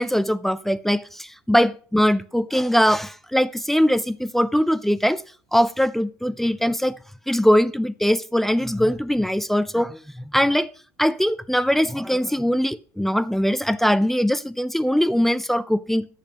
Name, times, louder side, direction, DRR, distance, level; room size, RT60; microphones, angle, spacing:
voice 1, 0.0-5.2 5.5-7.0 7.3-10.7 11.0-16.1, equal, 5° left, 0.4 m, -21 dB
8.3 x 6.5 x 2.8 m
supercardioid pair, 85°, 8 cm